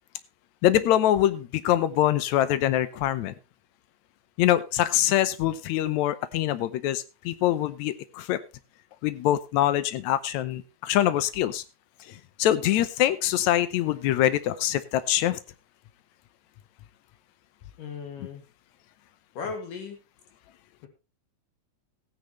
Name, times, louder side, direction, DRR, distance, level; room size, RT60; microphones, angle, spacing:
voice 1, 0.6-3.3 4.4-8.4 9.0-11.6 12.1-15.4, left 13 dB, 75° left, 14 dB, 2.0 m, -24 dB
voice 2, 17.8-18.4 19.3-20.0, left 5 dB, 90° left, 5 dB, 3.9 m, -36 dB
16.0 x 9.6 x 3.1 m, 0.27 s
omnidirectional pair, 3.6 m